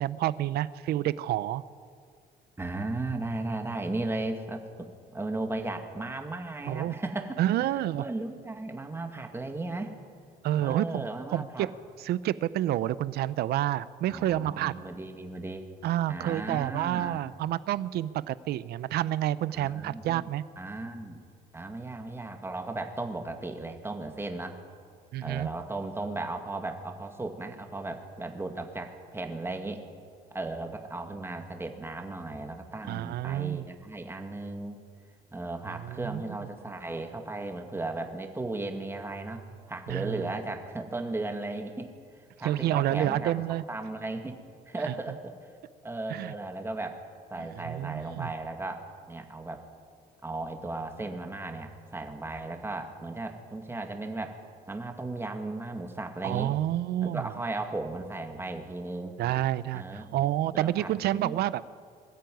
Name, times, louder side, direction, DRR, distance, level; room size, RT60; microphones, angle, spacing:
voice 1, 0.0-1.6 6.7-6.9 7.4-8.0 10.4-11.7 12.0-14.8 15.8-20.4 25.1-25.5 32.9-33.7 35.8-36.2 39.9-40.3 42.4-43.6 46.1-46.3 47.4-48.3 56.2-57.3 59.2-61.6, right 13 dB, 70° right, 17 dB, 0.6 m, -29 dB
voice 2, 2.6-9.9 10.6-11.7 14.1-15.7 16.1-17.2 19.5-20.3 20.6-21.2 21.5-24.6 25.2-29.8 30.3-34.8 35.3-41.9 42.4-44.4 44.7-45.3 45.8-47.0 47.3-49.7 50.2-54.4 54.7-56.5 57.0-59.2 59.7-60.1 60.5-61.4, right 2 dB, 15° right, 5 dB, 2.2 m, -36 dB
21.5 x 13.5 x 9.3 m, 2.1 s
cardioid pair, 110°, 17 cm